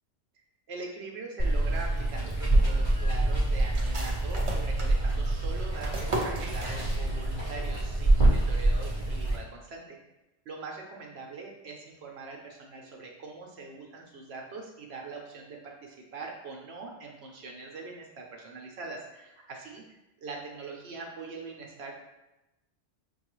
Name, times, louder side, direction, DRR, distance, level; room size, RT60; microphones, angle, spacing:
voice 1, 0.7-10.0 10.5-21.9, right 4 dB, 65° right, 0 dB, 0.9 m, -42 dB
Water, 1.4-9.4, right 1 dB, 25° left, 0.8 m, -26 dB
sound 1, 3.7-7.4 7.6-7.7 8.2-8.6, right 2 dB, 35° right, 0.5 m, -37 dB
5.7 x 2.3 x 3.0 m, 0.98 s
omnidirectional pair, 1.2 m